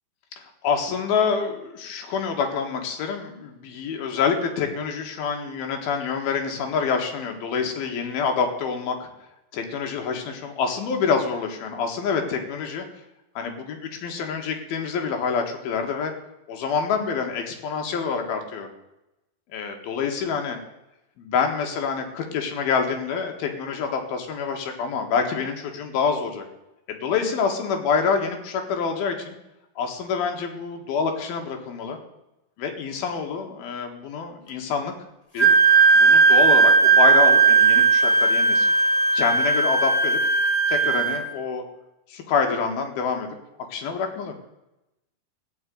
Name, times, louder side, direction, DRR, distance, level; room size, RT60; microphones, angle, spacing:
voice 1, 0.6-9.1 9.5-12.9 13.4-16.1 16.5-18.7 19.5-20.6 21.2-26.4 26.9-29.4 29.8-32.0 32.6-34.9 35.3-35.5 36.0-38.7 39.1-40.2 40.7-41.6 42.1-43.4 43.7-44.3, left 5 dB, 75° left, 4 dB, 3.5 m, -26 dB
Wind instrument woodwind instrument, 35.4-41.2, right 4 dB, 20° left, 0.9 m, -17 dB
15.5 x 7.3 x 9.3 m, 0.93 s
omnidirectional pair, 4.3 m